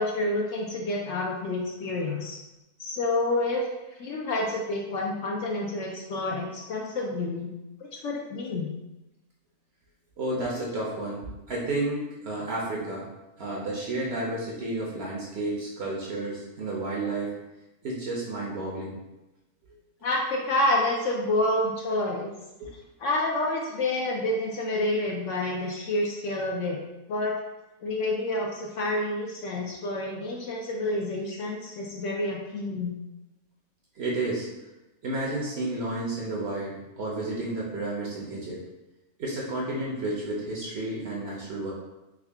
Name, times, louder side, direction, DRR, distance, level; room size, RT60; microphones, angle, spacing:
voice 1, 0.0-2.4 2.8-3.7 4.0-7.5 7.9-8.7 20.0-22.3 23.0-26.8 27.1-27.4 27.8-33.0, left 2 dB, 70° left, -1 dB, 0.8 m, -28 dB
voice 2, 10.2-13.1 13.4-17.4 17.8-19.0 22.6-22.7 33.9-34.5 35.0-38.6 39.2-41.7, right 2 dB, 55° right, -4 dB, 0.8 m, -31 dB
3.6 x 2.2 x 3.3 m, 1.0 s
omnidirectional pair, 1.5 m